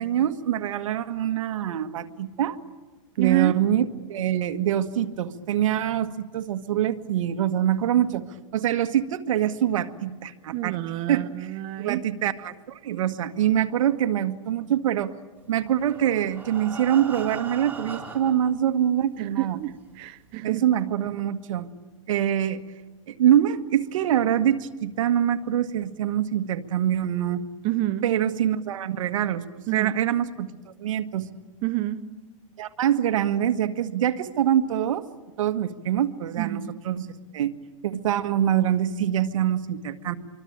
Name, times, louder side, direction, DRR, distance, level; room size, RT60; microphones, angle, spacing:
voice 1, 0.0-2.6 3.2-8.3 8.5-10.8 11.1-11.3 11.8-15.2 15.5-19.6 20.4-21.7 22.1-22.6 23.1-27.5 28.0-29.4 29.7-30.5 30.8-31.3 32.6-35.0 35.4-37.5 37.8-40.1, right 10 dB, 70° right, 1.7 m, -24 dB
voice 2, 3.1-3.5 10.5-12.0 19.2-20.6 27.6-28.1 29.7-29.9 31.6-32.0 36.4-36.7, right 16 dB, 35° right, 0.8 m, -28 dB
Breathing, 15.6-18.5 19.3-19.4 19.7-19.8 20.3-20.4, right 4 dB, 10° right, 3.7 m, -39 dB
27.0 x 24.0 x 8.8 m
hypercardioid pair, 150°, 18 cm